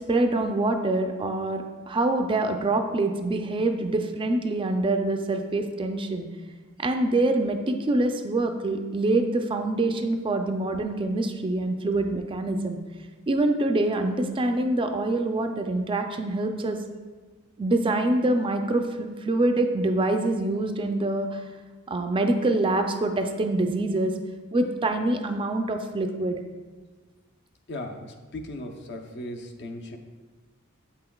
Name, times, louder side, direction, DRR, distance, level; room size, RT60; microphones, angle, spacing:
voice 1, 0.0-6.3 6.8-12.8 13.3-16.8 17.6-21.4 21.9-24.1 24.5-26.4, right 2 dB, 25° right, 5 dB, 0.4 m, -25 dB
voice 2, 27.7-30.0, left 1 dB, 55° left, 3 dB, 0.6 m, -37 dB
8.2 x 5.7 x 2.3 m, 1.3 s
head